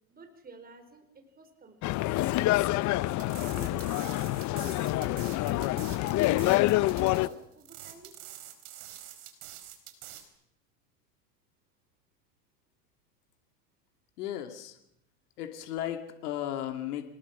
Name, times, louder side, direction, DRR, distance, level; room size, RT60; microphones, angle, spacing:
voice 1, 0.1-1.0 1.3-2.8 3.4-6.6 7.0-8.1, right 3 dB, 20° right, 7 dB, 4.5 m, -50 dB
sound 1, 1.8-7.3, left 17 dB, 40° left, 0.8 m, -27 dB
sound 2, 3.1-10.3, right 12 dB, 65° right, 4.4 m, -46 dB
voice 2, 14.2-14.8 15.4-17.1, left 11 dB, 75° left, 6 dB, 2.6 m, -35 dB
25.5 x 20.0 x 6.1 m, 0.80 s
hypercardioid pair, 105°, 47 cm